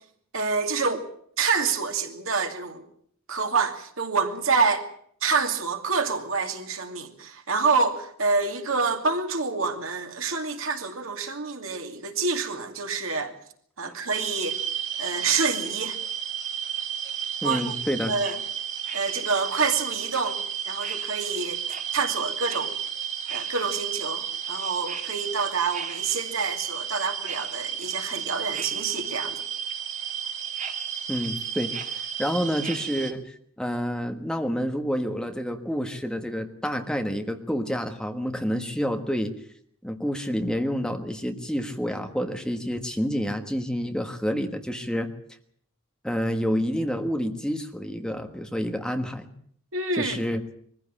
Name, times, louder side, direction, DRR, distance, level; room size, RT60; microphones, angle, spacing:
voice 1, 0.3-1.1 1.4-2.8 3.3-4.9 5.2-13.3 13.8-14.6 15.0-16.0 17.4-17.7 18.1-18.4 18.9-21.6 21.9-22.8 23.3-29.4 49.7-50.2, right 4 dB, 80° right, 2.5 m, -27 dB
sound 1, 14.1-33.1, right 8 dB, 35° right, 2.2 m, -32 dB
voice 2, 17.4-18.1 31.1-33.2 33.6-39.3 39.8-45.1 46.0-49.3 50.0-50.4, equal, 5° left, 1.4 m, -28 dB
22.5 x 15.0 x 8.7 m
head